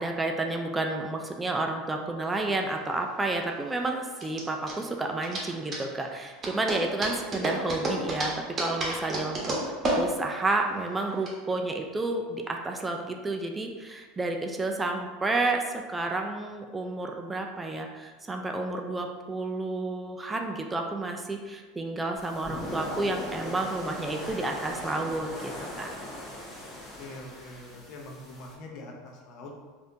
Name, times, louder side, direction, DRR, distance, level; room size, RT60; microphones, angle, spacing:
voice 1, 0.0-8.3 8.6-15.6 15.9-25.9, right 2 dB, 15° right, 3 dB, 0.3 m, -31 dB
sound 1, 2.6-11.3, right 1 dB, 35° right, 0.9 m, -32 dB
sound 2, 22.1-28.5, left 1 dB, 15° left, 1.2 m, -39 dB
voice 2, 27.0-29.5, left 2 dB, 55° left, 0 dB, 0.6 m, -43 dB
3.3 x 2.5 x 2.7 m, 1.4 s
hypercardioid pair, 85°, 0 cm